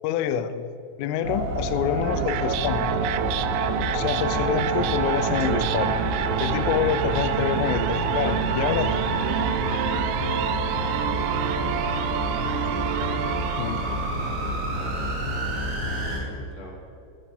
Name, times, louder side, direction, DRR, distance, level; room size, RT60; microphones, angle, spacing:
voice 1, 0.0-0.7 1.0-3.0 3.9-6.0 6.4-9.1 10.2-10.4 13.6-13.9, left 9 dB, 85° left, 13 dB, 3.3 m, -27 dB
sound 1, 1.2-16.2, right 1 dB, 40° right, 2.5 m, -28 dB
sound 2, 2.0-14.3, right 11 dB, 90° right, 3.2 m, -28 dB
voice 2, 15.8-16.7, left 1 dB, 40° left, -1 dB, 3.2 m, -44 dB
17.5 x 13.5 x 5.3 m, 2.6 s
omnidirectional pair, 5.7 m